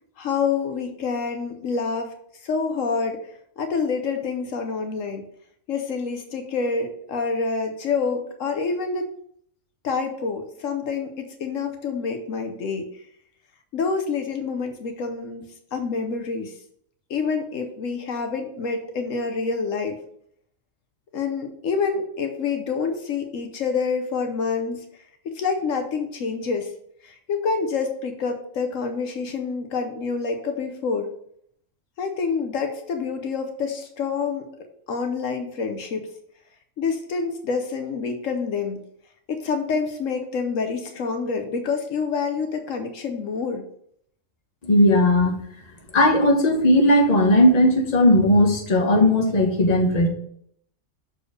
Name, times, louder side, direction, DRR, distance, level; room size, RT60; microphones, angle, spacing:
voice 1, 0.2-2.1 2.4-3.3 3.6-5.2 5.7-9.1 9.8-12.9 13.7-15.4 15.7-16.5 17.1-20.0 21.1-24.8 25.2-26.7 27.0-31.1 32.0-34.4 34.9-36.1 36.8-38.8 39.3-43.6, left 5 dB, 75° left, 5 dB, 1.2 m, -27 dB
voice 2, 44.6-45.3 45.9-50.1, left 1 dB, 30° left, 1 dB, 1.2 m, -17 dB
6.5 x 4.5 x 5.0 m, 0.68 s
omnidirectional pair, 1.4 m